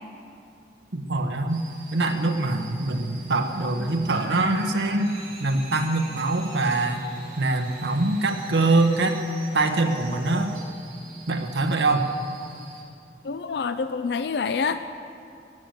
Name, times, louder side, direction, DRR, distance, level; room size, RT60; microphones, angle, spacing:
voice 1, 0.9-1.6 1.9-5.1 5.4-7.1 7.4-9.2 9.5-10.5 11.3-12.1, right 2 dB, 80° right, 5 dB, 1.1 m, -23 dB
sound 1, 1.5-12.8, right 3 dB, 55° right, 3.0 m, -44 dB
voice 2, 13.2-14.8, left 5 dB, 70° left, 11 dB, 0.4 m, -27 dB
14.0 x 7.8 x 9.1 m, 2.5 s
head